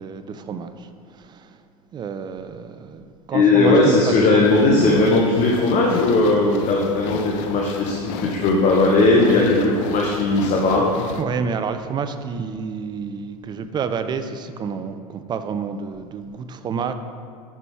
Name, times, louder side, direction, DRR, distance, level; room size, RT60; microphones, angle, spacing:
voice 1, 0.0-1.6 1.9-5.0 7.5-7.6 9.3-9.4 11.2-16.9, right 5 dB, 25° right, 9 dB, 0.4 m, -29 dB
voice 2, 3.3-10.9, left 2 dB, 35° left, -1 dB, 0.9 m, -18 dB
sound 1, 4.4-11.2, left 7 dB, 55° left, 0.5 m, -33 dB
7.2 x 5.9 x 3.5 m, 2.2 s
figure-of-eight pair, 85°, 20 cm